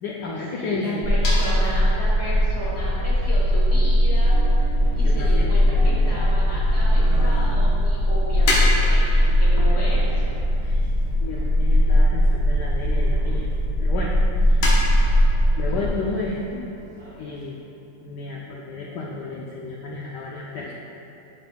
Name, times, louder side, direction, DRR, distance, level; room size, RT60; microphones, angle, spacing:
voice 1, 0.0-1.4 5.0-5.5 10.6-10.9 11.2-13.5 13.8-14.8 15.6-16.7 17.2-17.6 18.0-20.7, left 3 dB, 90° left, -3 dB, 0.9 m, -32 dB
voice 2, 0.5-4.7 4.9-10.3, equal, 30° right, -8 dB, 0.6 m, -34 dB
sound 1, 1.0-15.9, equal, 35° left, 1.6 m, -19 dB
sound 2, 1.2-4.6 5.5-6.1 6.3-7.7 7.9-13.2 13.5-13.6 13.9-14.1 14.6-16.1, left 1 dB, 70° left, 1.8 m, -31 dB
sound 3, 4.1-17.4, equal, 55° right, 2.2 m, -42 dB
11.5 x 4.0 x 2.2 m, 2.7 s
omnidirectional pair, 2.4 m